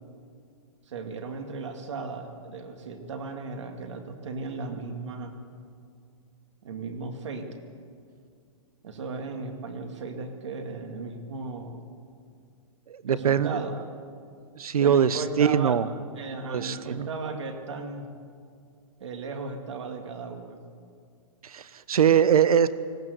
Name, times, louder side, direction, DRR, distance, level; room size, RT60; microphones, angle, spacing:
voice 1, 0.9-5.3 6.6-7.5 8.8-11.8 13.1-13.8 14.8-15.9 16.2-18.1 19.0-20.6, right 4 dB, 55° right, 5 dB, 2.2 m, -36 dB
voice 2, 12.9-13.6 14.6-15.9 16.4-17.1 21.4-22.7, right 8 dB, 80° right, 15 dB, 1.0 m, -22 dB
20.0 x 16.5 x 8.0 m, 2.2 s
hypercardioid pair, 180°, 19 cm